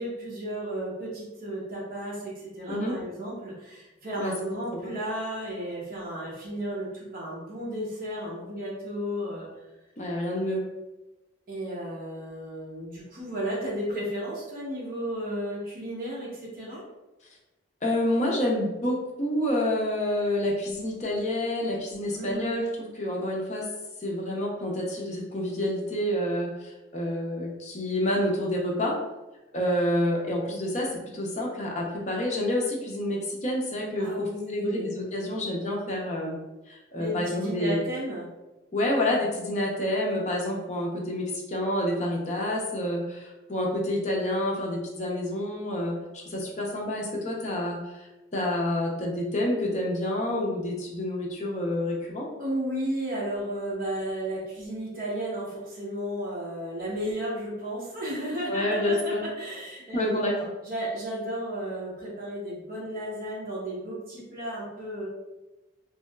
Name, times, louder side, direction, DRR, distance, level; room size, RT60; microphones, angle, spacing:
voice 1, 0.0-9.5 11.5-16.8 22.1-22.4 34.0-34.9 37.0-38.3 52.4-60.2 60.6-65.1, right 1 dB, 50° right, -6 dB, 0.7 m, -33 dB
voice 2, 10.0-10.6 17.8-23.7 24.0-28.9 29.5-36.4 36.7-37.9 38.7-52.3 58.5-59.2 59.9-60.5, left 1 dB, 35° left, -2 dB, 0.6 m, -28 dB
3.0 x 2.7 x 2.2 m, 1.1 s
head